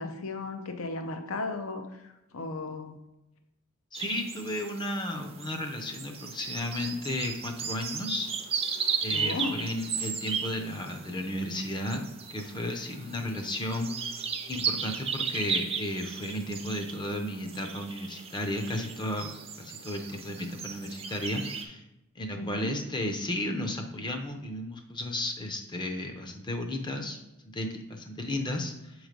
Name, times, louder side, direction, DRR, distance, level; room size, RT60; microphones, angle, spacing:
voice 1, 0.0-3.0 9.1-9.6 22.4-22.7, left 3 dB, 80° left, 6 dB, 0.7 m, -35 dB
voice 2, 3.9-8.3 9.0-12.0 12.3-19.3 19.6-21.8 22.2-27.2 27.5-28.9, left 1 dB, 20° left, 4 dB, 0.6 m, -34 dB
sound 1, 3.9-21.6, right 6 dB, 30° right, 0.5 m, -36 dB
7.2 x 3.2 x 5.1 m, 0.92 s
head